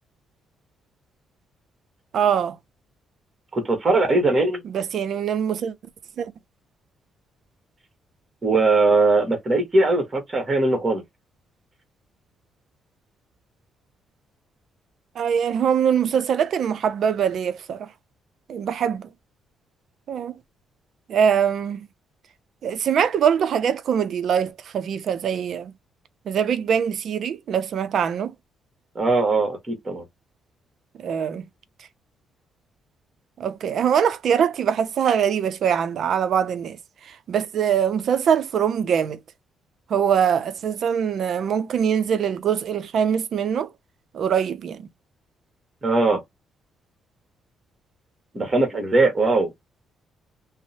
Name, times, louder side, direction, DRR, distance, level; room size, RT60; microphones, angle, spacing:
voice 1, 2.1-2.6 4.7-5.7 6.2-6.3 15.2-17.9 18.5-19.1 20.1-20.4 21.1-21.9 22.6-25.7 26.3-28.3 31.0-31.5 33.4-36.8 37.0-39.2 39.9-43.7 44.1-44.9, right 8 dB, 65° right, 0.4 m, -23 dB
voice 2, 3.5-4.6 8.4-11.0 28.9-30.0 45.8-46.2 48.3-49.5, right 2 dB, 30° right, 1.2 m, -20 dB
2.7 x 2.0 x 2.7 m
cardioid pair, 90°, 0 cm